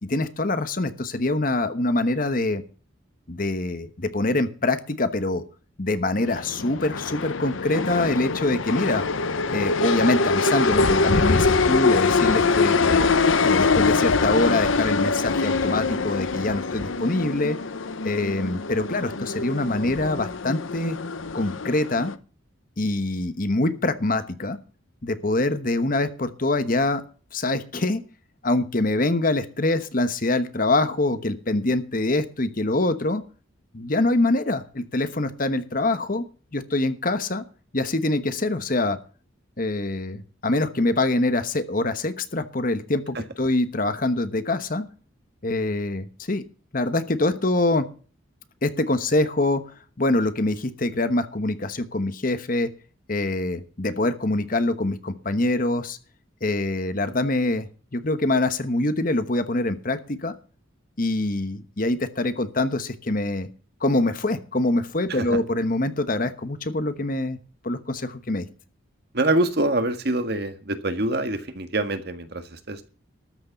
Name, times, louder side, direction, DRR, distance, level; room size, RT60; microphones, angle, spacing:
voice 1, 0.0-2.6 3.3-5.4 5.8-9.0 9.5-13.1 13.4-17.6 18.0-21.0 21.3-22.1 22.8-24.6 25.0-27.0 27.3-28.0 28.4-33.2 33.7-36.2 36.5-37.4 37.7-39.0 39.6-44.9 45.4-46.4 46.7-47.9 48.6-49.6 50.0-52.7 53.1-56.0 56.4-60.3 61.0-63.5 63.8-67.4 67.6-68.5, left 2 dB, 45° left, 11 dB, 1.1 m, -24 dB
sound 1, 6.2-22.1, left 4 dB, 80° left, 0.8 m, -23 dB
voice 2, 65.1-65.4 69.1-72.9, right 1 dB, 55° right, 8 dB, 1.7 m, -25 dB
13.5 x 6.5 x 8.1 m, 0.38 s
head